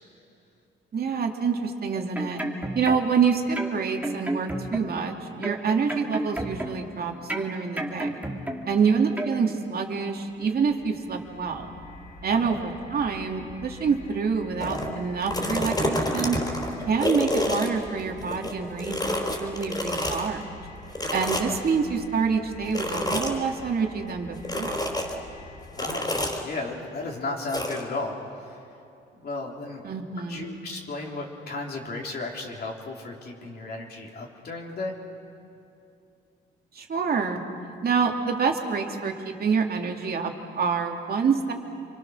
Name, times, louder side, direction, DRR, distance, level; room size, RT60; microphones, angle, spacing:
voice 1, 0.9-2.4 2.7-8.3 8.7-11.7 12.2-16.4 16.9-19.0 19.4-20.4 21.1-24.8 29.8-30.6 36.7-37.4 37.8-41.5, right 5 dB, 50° right, 2 dB, 2.7 m, -27 dB
sound 1, 1.9-3.2 3.6-5.1 5.4-7.0 7.3-8.8 9.2-9.4, right 1 dB, 10° right, 2.6 m, -32 dB
sound 2, 10.2-26.4, left 1 dB, 70° left, 6.7 m, -46 dB
sound 3, 14.6-14.9 15.2-18.5 18.8-20.3 20.9-21.7 22.7-23.4 24.4-25.1 25.8-26.4 27.5-27.8, left 1 dB, 20° left, 4.5 m, -28 dB
voice 2, 25.8-28.6 29.1-29.8 30.3-34.9, left 2 dB, 55° left, -1 dB, 3.7 m, -34 dB
28.5 x 24.0 x 6.5 m, 2.7 s
cardioid pair, 90°, 20 cm